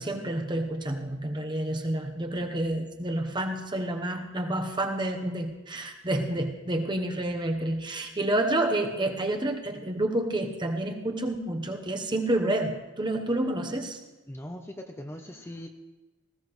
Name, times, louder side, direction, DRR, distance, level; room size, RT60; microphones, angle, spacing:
voice 1, 0.0-14.0, right 1 dB, 20° right, 4 dB, 1.0 m, -29 dB
voice 2, 14.3-15.7, left 1 dB, 10° left, 4 dB, 0.7 m, -40 dB
19.0 x 15.5 x 3.2 m, 1.1 s
head